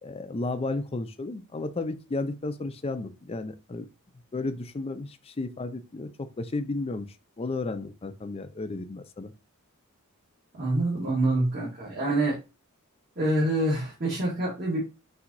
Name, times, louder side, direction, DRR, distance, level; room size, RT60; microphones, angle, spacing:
voice 1, 0.0-3.9 4.3-7.1 7.4-9.3, left 2 dB, 25° left, 0.4 m, -33 dB
voice 2, 10.5-12.4 13.2-14.8, right 1 dB, 45° right, 1.5 m, -26 dB
5.8 x 2.8 x 2.6 m
head